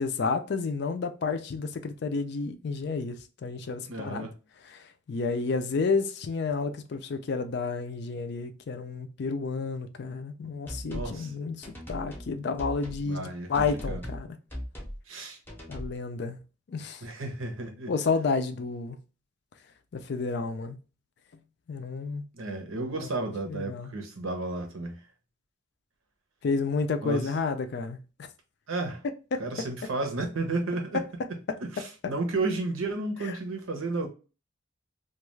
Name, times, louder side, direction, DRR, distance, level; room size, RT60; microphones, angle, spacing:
voice 1, 0.0-4.3 4.7-14.3 15.7-16.4 16.7-17.0 17.9-19.0 19.9-20.8 21.7-22.2 23.0-23.1 23.5-23.9 26.4-28.3 29.3-29.4 31.5-31.6, left 4 dB, 55° left, 0.4 m, -31 dB
voice 2, 3.9-4.4 10.8-11.3 13.0-14.0 15.1-15.4 17.0-17.9 22.3-25.0 27.0-27.3 28.7-29.0 29.4-31.0 31.6-34.1, right 2 dB, 85° right, 0.8 m, -32 dB
sound 1, 10.7-11.2 11.6-12.3 12.6-13.0 13.5-14.2 14.5-15.0 15.5-16.0, equal, 10° left, 0.6 m, -38 dB
2.3 x 2.3 x 3.1 m
head